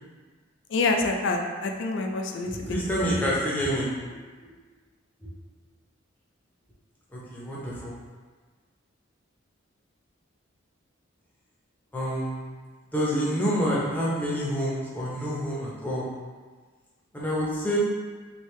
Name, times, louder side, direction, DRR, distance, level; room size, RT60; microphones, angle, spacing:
voice 1, 0.7-2.7 3.0-3.4, left 3 dB, 60° left, 3 dB, 0.4 m, -27 dB
voice 2, 2.5-4.0 7.1-8.0 11.9-12.4 12.9-16.1 17.1-17.8, equal, 10° left, -7 dB, 0.7 m, -28 dB
3.1 x 2.7 x 3.2 m, 1.4 s
head